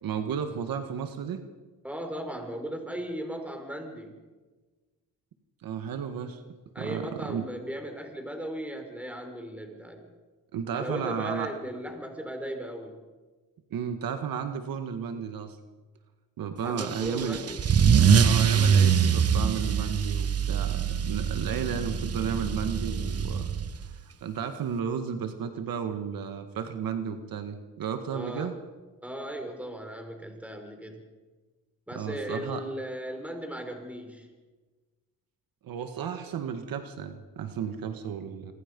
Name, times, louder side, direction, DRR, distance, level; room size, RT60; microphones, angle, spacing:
voice 1, 0.0-1.4 5.6-6.4 6.8-7.5 10.5-11.5 13.7-15.6 16.4-17.4 18.2-23.5 23.8-28.5 32.0-32.6 35.6-38.5, right 7 dB, 75° right, 7 dB, 1.9 m, -33 dB
voice 2, 1.8-4.2 6.7-10.1 10.7-13.0 16.6-17.6 28.1-28.6 29.0-31.0 31.9-34.3, equal, 5° right, 4 dB, 5.3 m, -37 dB
Car / Engine starting / Accelerating revving vroom, 16.8-23.9, right 7 dB, 45° right, 1.2 m, -24 dB
26.5 x 25.0 x 5.4 m, 1.3 s
cardioid pair, 95°, 35 cm